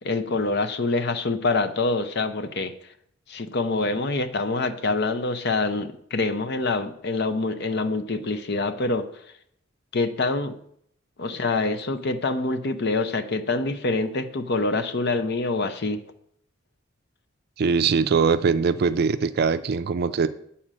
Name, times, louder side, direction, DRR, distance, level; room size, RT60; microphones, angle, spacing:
voice 1, 0.0-2.7 3.3-9.1 9.9-10.5 11.2-16.0, left 3 dB, 60° left, 10 dB, 0.7 m, -25 dB
voice 2, 17.6-20.3, right 5 dB, 55° right, 12 dB, 0.4 m, -22 dB
8.9 x 4.3 x 6.2 m, 0.70 s
head